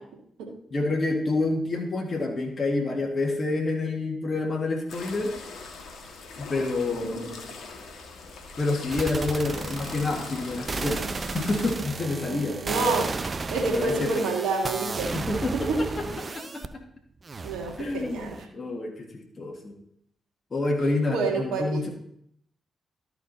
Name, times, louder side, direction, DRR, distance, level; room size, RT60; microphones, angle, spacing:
voice 1, 0.7-5.3 6.4-7.3 8.6-11.0 11.3-12.6 13.7-14.2 15.1-16.1 16.3-16.8 17.8-19.7 20.5-21.9, left 2 dB, 45° left, 0 dB, 1.8 m, -28 dB
sound 1, 4.9-11.7, left 4 dB, 70° left, 1.3 m, -41 dB
sound 2, 8.9-16.7 17.2-18.4, right 4 dB, 45° right, 0.7 m, -34 dB
voice 2, 12.3-13.1 13.5-15.8 17.4-18.4 21.1-21.9, right 3 dB, 80° right, 1 dB, 1.7 m, -28 dB
13.0 x 4.9 x 4.1 m, 0.69 s
hypercardioid pair, 40°, 0 cm